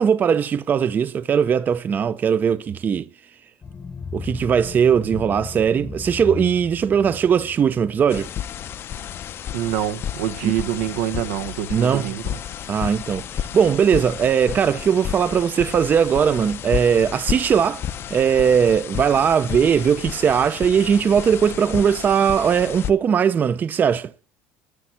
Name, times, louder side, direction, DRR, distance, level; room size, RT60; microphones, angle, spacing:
voice 1, 0.0-3.1 4.1-8.3 10.4-10.5 11.7-12.1 12.7-17.8 18.1-24.1, right 7 dB, 35° right, 0.6 m, -19 dB
sound 1, 3.6-9.6, left 5 dB, 25° left, 1.0 m, -37 dB
sound 2, 8.1-22.9, left 10 dB, 45° left, 0.7 m, -32 dB
voice 2, 9.5-12.4, right 12 dB, 85° right, 1.2 m, -26 dB
12.0 x 6.7 x 7.4 m
supercardioid pair, 110°, 6 cm